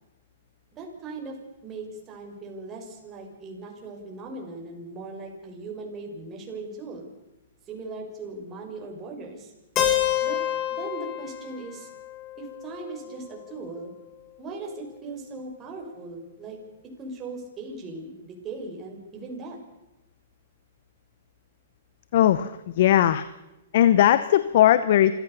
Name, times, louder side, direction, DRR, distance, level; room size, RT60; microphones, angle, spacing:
voice 1, 0.7-1.4 1.6-7.1 7.7-9.5 10.2-10.4 10.7-11.9 12.4-13.9 14.4-16.6 17.0-19.6, right 3 dB, 25° right, 1 dB, 6.2 m, -38 dB
Keyboard (musical), 9.8-13.6, left 11 dB, 30° left, 4.3 m, -29 dB
voice 2, 22.1-23.3 23.7-25.1, left 11 dB, 60° left, 14 dB, 1.0 m, -19 dB
26.5 x 15.5 x 6.9 m, 0.99 s
hypercardioid pair, 120°, 0 cm